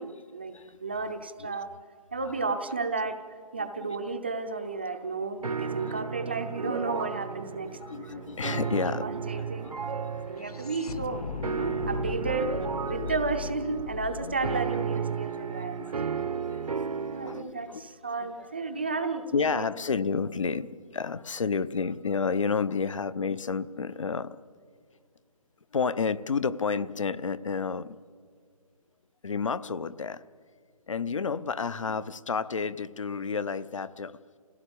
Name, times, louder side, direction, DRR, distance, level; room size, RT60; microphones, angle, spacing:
voice 1, 0.0-0.5 0.8-1.7 2.1-3.2 3.5-7.8 8.1-8.2 8.5-8.6 9.0-9.7 10.3-12.6 12.8-15.8 16.4-16.5 17.1-19.7, right 4 dB, 15° right, 7 dB, 0.5 m, -33 dB
voice 2, 0.5-1.1 1.4-1.7 2.2-2.5 3.0-3.1 3.6-4.0 5.8-6.3 6.6-6.7 7.5-9.9 10.5-10.9 11.4-12.2 12.8-13.5 14.2-14.5 15.3-16.7 17.2-17.9 18.1-18.5 19.3-24.4 25.7-28.0 29.2-30.2 30.9-34.2, left 5 dB, 55° left, 16 dB, 0.7 m, -32 dB
sound 1, 5.4-17.4, right 6 dB, 80° right, 1.0 m, -34 dB
sound 2, 7.5-7.6 7.8-16.0, left 5 dB, 85° left, 1.0 m, -39 dB
27.0 x 16.5 x 8.5 m, 2.1 s
hypercardioid pair, 175°, 19 cm